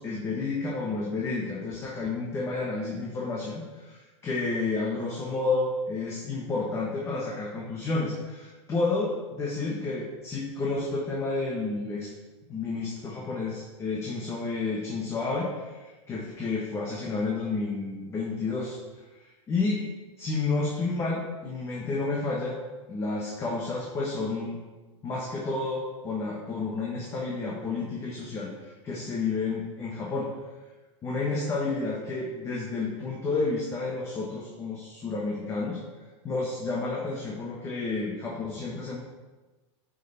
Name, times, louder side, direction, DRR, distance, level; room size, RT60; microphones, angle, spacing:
voice 1, 0.0-12.1 12.5-18.8 19.1-19.8 20.2-22.6 22.9-24.6 25.0-30.3 31.0-35.8 36.2-39.0, left 3 dB, 15° left, -3 dB, 1.2 m, -30 dB
10.0 x 5.5 x 4.1 m, 1.2 s
supercardioid pair, 160°, 16 cm